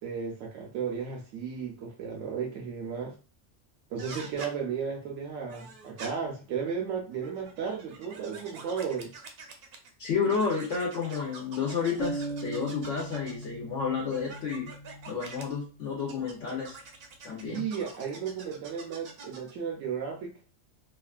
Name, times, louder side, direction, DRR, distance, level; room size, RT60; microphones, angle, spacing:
voice 1, 0.0-3.2 3.9-9.1 17.4-20.3, right 6 dB, 90° right, -1 dB, 1.0 m, -34 dB
sound 1, 4.0-4.5 5.5-6.1 7.1-9.9 10.2-13.5 14.1-15.4 16.1-19.5, right 4 dB, 60° right, 0.7 m, -45 dB
voice 2, 10.0-14.7 15.1-16.8 17.2-17.6, left 5 dB, 70° left, -4 dB, 1.1 m, -31 dB
sound 2, 12.0-15.8, right 1 dB, 30° left, 0.7 m, -39 dB
2.9 x 2.4 x 2.3 m, 0.35 s
omnidirectional pair, 1.3 m